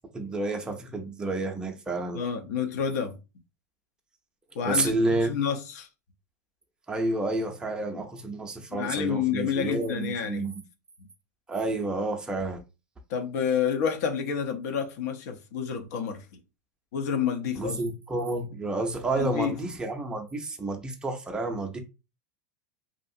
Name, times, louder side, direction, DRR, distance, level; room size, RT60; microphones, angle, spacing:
voice 1, 0.1-2.2 4.6-5.3 6.9-10.6 11.5-12.6 17.6-21.8, right 2 dB, 10° right, 0.5 m, -30 dB
voice 2, 2.1-3.2 4.5-4.9 5.2-5.9 8.7-10.5 13.1-16.2 16.9-17.8 19.2-19.6, left 7 dB, 70° left, 0.6 m, -29 dB
2.7 x 2.4 x 2.6 m
supercardioid pair, 125°, 9 cm